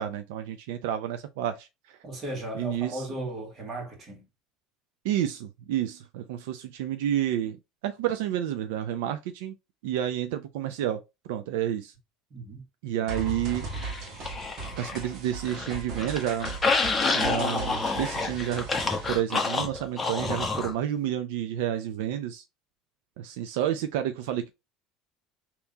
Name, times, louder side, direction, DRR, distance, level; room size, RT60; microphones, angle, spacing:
voice 1, 0.0-1.7 2.5-3.0 5.0-7.6 7.8-9.5 9.8-11.0 11.3-11.9 12.8-13.7 14.8-16.6 17.0-18.7 19.1-22.4 23.2-24.5, right 11 dB, 85° right, 0.5 m, -30 dB
voice 2, 2.0-4.3 12.3-12.7, right 1 dB, 35° right, 2.0 m, -36 dB
sound 1, 13.1-19.1, right 3 dB, 55° right, 1.4 m, -38 dB
sound 2, 13.7-15.1 15.4-20.7, left 4 dB, 15° left, 0.9 m, -28 dB
3.6 x 3.0 x 3.9 m
cardioid pair, 135°, 0 cm